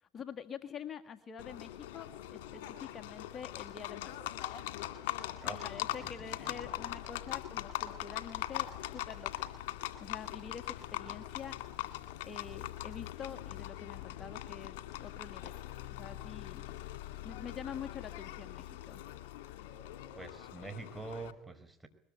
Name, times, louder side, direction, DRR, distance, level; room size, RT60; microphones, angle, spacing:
voice 1, 0.0-4.4 5.4-9.5 9.8-11.6 12.3-15.6 16.0-16.7 17.2-19.0, left 7 dB, 40° left, 9 dB, 1.7 m, -46 dB
Livestock farm animals working animals, 1.4-21.3, left 14 dB, 75° left, 2.3 m, -41 dB
voice 2, 5.4-5.8 6.4-6.5 20.1-21.9, right 3 dB, 10° right, 8 dB, 4.6 m, -45 dB
22.0 x 21.0 x 8.9 m, 0.67 s
hypercardioid pair, 75°, 0 cm